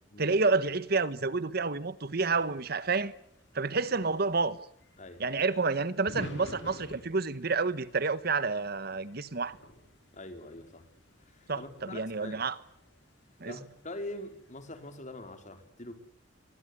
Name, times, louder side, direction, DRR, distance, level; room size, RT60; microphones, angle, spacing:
voice 1, 0.2-3.1 3.5-4.6 5.2-9.6 11.5-12.6 13.4-13.6, right 4 dB, 55° right, 1.2 m, -29 dB
sound 1, 2.2-15.0, left 1 dB, 75° left, 5.8 m, -51 dB
voice 2, 10.1-10.9 11.3-12.4 13.4-16.0, left 1 dB, 40° left, 4.3 m, -43 dB
24.5 x 20.0 x 9.9 m
head